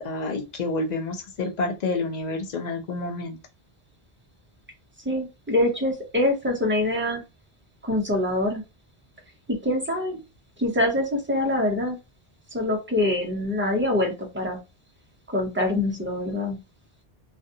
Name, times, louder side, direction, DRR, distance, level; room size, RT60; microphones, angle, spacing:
voice 1, 0.0-3.4, left 3 dB, 55° left, 0.5 m, -29 dB
voice 2, 5.0-7.2 7.8-8.6 9.5-10.2 10.6-12.0 12.5-14.6 15.3-16.6, left 1 dB, 15° right, 0.5 m, -24 dB
2.4 x 2.2 x 2.6 m
omnidirectional pair, 1.0 m